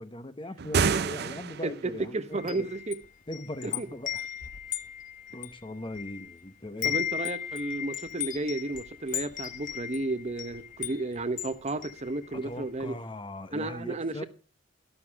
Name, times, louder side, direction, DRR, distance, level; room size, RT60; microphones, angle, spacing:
voice 1, 0.0-2.7 3.3-4.3 5.3-7.0 12.3-14.2, left 1 dB, 25° left, 1.0 m, -40 dB
sound 1, 0.6-1.9, right 5 dB, 60° right, 0.6 m, -28 dB
voice 2, 2.1-3.0 3.6-3.9 6.8-13.0 13.5-14.2, right 2 dB, 35° right, 1.0 m, -33 dB
Wind chime, 2.3-6.4 6.7-12.6, left 9 dB, 45° left, 1.0 m, -36 dB
12.5 x 12.0 x 3.5 m
head